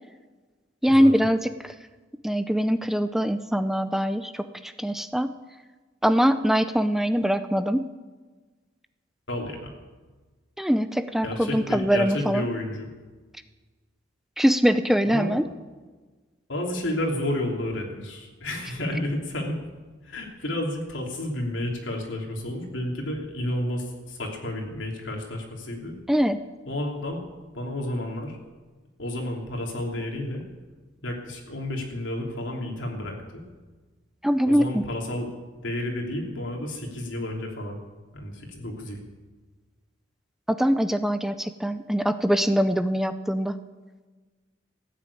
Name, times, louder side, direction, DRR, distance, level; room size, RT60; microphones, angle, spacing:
voice 1, 0.8-1.7 2.2-5.3 6.0-7.9 10.6-12.4 14.4-15.4 26.1-26.4 34.2-34.8 40.5-43.6, equal, ahead, 11 dB, 0.5 m, -23 dB
voice 2, 9.3-9.7 11.2-12.9 15.1-15.3 16.5-19.6 20.0-25.9 26.7-27.2 27.5-28.4 29.0-30.4 31.0-33.4 34.5-35.3 35.6-37.8 38.1-39.0, left 1 dB, 90° left, 1 dB, 3.1 m, -31 dB
14.5 x 9.4 x 8.4 m, 1.3 s
head